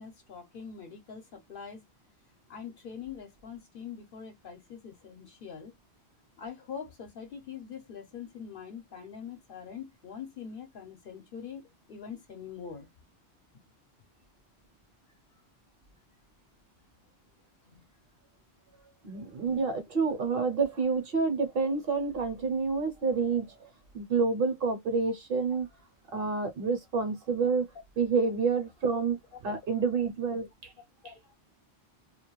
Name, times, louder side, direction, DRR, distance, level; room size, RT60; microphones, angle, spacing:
voice 1, 0.0-1.8 2.5-5.7 6.4-12.9 17.7-17.8 31.0-31.2, left 7 dB, 60° left, 0.8 m, -43 dB
voice 2, 19.0-23.7 23.9-25.7 26.1-27.7 28.0-29.2 29.4-30.7, right 4 dB, 60° right, 0.9 m, -28 dB
2.3 x 2.2 x 2.9 m
omnidirectional pair, 1.1 m